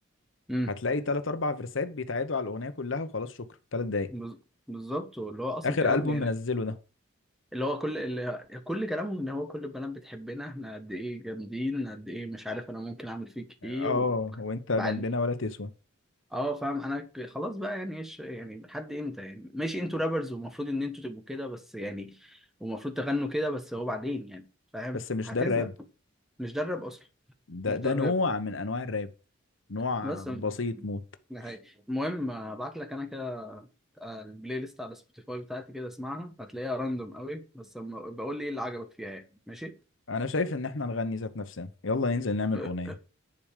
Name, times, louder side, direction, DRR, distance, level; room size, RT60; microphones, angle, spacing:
voice 1, 0.8-3.4 3.7-4.1 5.6-6.8 13.6-15.7 24.9-25.7 27.5-29.1 29.7-31.0 40.1-42.9, left 3 dB, 60° left, 0.9 m, -30 dB
voice 2, 4.7-6.3 7.5-14.1 14.7-15.0 16.3-24.4 24.7-25.7 26.4-27.0 27.7-28.1 30.0-30.4 30.7-30.8 31.3-33.7 34.0-35.0 35.3-39.7 42.5-43.0, left 1 dB, ahead, 1.2 m, -34 dB
10.5 x 4.9 x 6.5 m
head